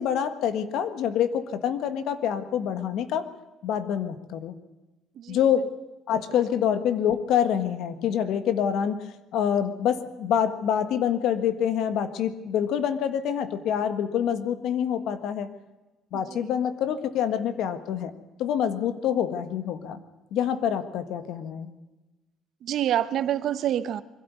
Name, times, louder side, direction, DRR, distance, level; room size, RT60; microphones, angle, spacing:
voice 1, 0.0-3.3 3.6-4.5 5.3-5.6 6.1-9.0 9.3-15.5 16.1-18.1 18.4-20.0 20.3-21.7, left 9 dB, 75° left, 10 dB, 1.5 m, -26 dB
voice 2, 16.1-16.4 22.6-24.0, right 11 dB, 60° right, 13 dB, 0.9 m, -27 dB
22.0 x 12.5 x 9.5 m, 1.1 s
cardioid pair, 140°, 0 cm